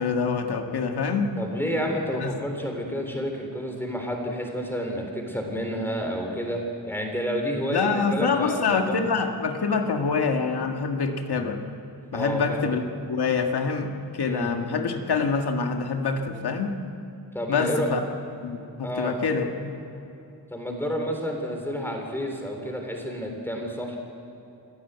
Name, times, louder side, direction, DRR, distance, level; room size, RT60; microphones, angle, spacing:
voice 1, 0.0-1.3 2.2-2.3 7.7-11.6 12.1-16.7 17.5-18.0 18.4-19.7, left 5 dB, 85° left, 4 dB, 1.9 m, -26 dB
voice 2, 1.4-9.0 12.1-12.7 14.2-14.5 17.3-17.9 18.8-19.2 20.5-24.0, equal, 5° left, 2 dB, 3.6 m, -30 dB
26.0 x 15.5 x 8.1 m, 2.8 s
wide cardioid pair, 165°, 38 cm